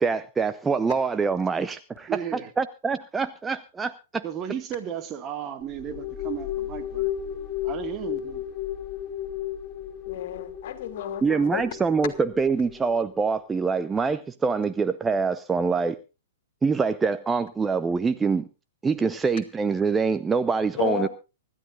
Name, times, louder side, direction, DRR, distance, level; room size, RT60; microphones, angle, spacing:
voice 1, 0.0-2.1 2.6-4.2 11.2-16.0 16.6-18.5 18.8-21.1, right 5 dB, 10° right, 0.6 m, -25 dB
voice 2, 2.1-2.5 4.2-7.1 7.6-8.4, right 9 dB, 30° right, 1.9 m, -34 dB
sound 1, 5.6-13.2, left 11 dB, 30° left, 6.1 m, -34 dB
voice 3, 10.1-11.6 20.8-21.1, left 10 dB, 50° left, 3.0 m, -32 dB
25.0 x 12.5 x 2.5 m
figure-of-eight pair, 110°, 0 cm